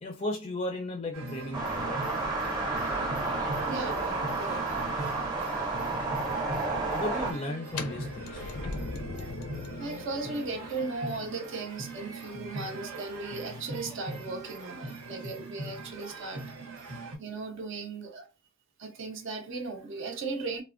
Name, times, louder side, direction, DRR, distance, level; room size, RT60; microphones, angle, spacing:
voice 1, 0.0-2.1 6.9-8.4, left 1 dB, 25° left, 0.4 m, -35 dB
sound 1, 1.1-17.2, right 2 dB, 90° right, 0.8 m, -41 dB
sound 2, 1.5-7.3, right 3 dB, 20° right, 0.7 m, -31 dB
voice 2, 3.3-4.6 9.8-16.5 17.2-18.3 18.8-20.6, right 3 dB, 55° right, 0.5 m, -37 dB
sound 3, 7.7-13.5, left 3 dB, 90° left, 0.5 m, -41 dB
3.2 x 2.1 x 2.4 m
head